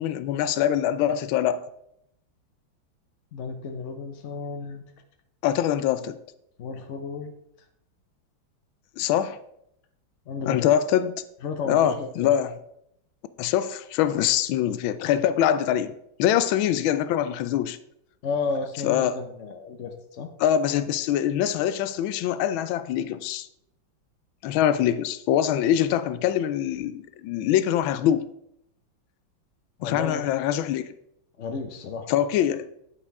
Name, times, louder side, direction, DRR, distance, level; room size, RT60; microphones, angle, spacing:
voice 1, 0.0-1.6 5.4-6.2 9.0-9.4 10.5-11.1 11.7-12.5 13.4-15.9 16.2-17.8 18.8-19.1 20.4-23.5 24.4-28.3 29.8-30.9 32.1-32.6, left 10 dB, 90° left, 1.4 m, -24 dB
voice 2, 3.3-4.8 6.6-7.3 10.3-10.6 11.4-12.3 18.2-20.3 29.8-30.3 31.4-32.3, left 4 dB, 60° left, 0.8 m, -33 dB
9.8 x 5.8 x 4.6 m
omnidirectional pair, 2.1 m